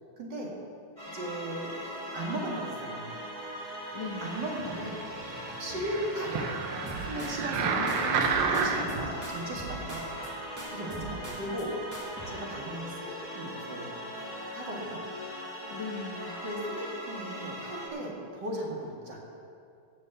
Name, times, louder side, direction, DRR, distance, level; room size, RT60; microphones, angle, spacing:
voice 1, 0.2-0.6 1.1-1.7 2.1-3.2 3.9-5.0 5.4-6.6 7.0-7.7 8.5-11.7 12.3-13.9 14.5-15.0 16.4-19.2, right 1 dB, 55° right, -3 dB, 2.5 m, -37 dB
sound 1, 1.0-17.9, equal, 15° left, 2.3 m, -40 dB
voice 2, 3.9-4.3 7.7-9.1 15.7-16.3, left 3 dB, 65° left, 1 dB, 1.8 m, -39 dB
sound 2, 4.5-9.1 9.7-9.8, right 5 dB, 75° right, 1.7 m, -31 dB
sound 3, 6.9-7.6 7.9-9.0 9.2-10.3 10.6-11.7 11.9-12.3, right 2 dB, 10° right, 1.6 m, -43 dB
14.5 x 5.3 x 7.8 m, 2.4 s
omnidirectional pair, 2.3 m